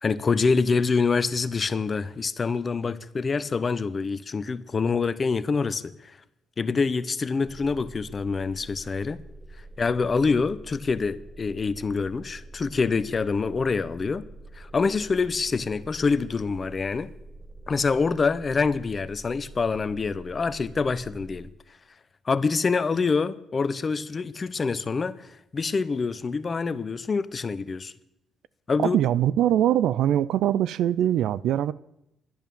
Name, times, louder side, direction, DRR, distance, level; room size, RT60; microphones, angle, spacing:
voice 1, 0.0-6.2 6.6-9.2 9.8-14.3 14.5-17.1 17.7-21.5 22.2-27.9 28.7-29.0, left 4 dB, 35° left, 0.8 m, -26 dB
sound 1, 7.4-21.5, right 2 dB, 15° right, 0.9 m, -46 dB
voice 2, 28.8-31.7, right 11 dB, 80° right, 0.4 m, -22 dB
11.0 x 10.5 x 7.0 m
cardioid pair, 90°, 0 cm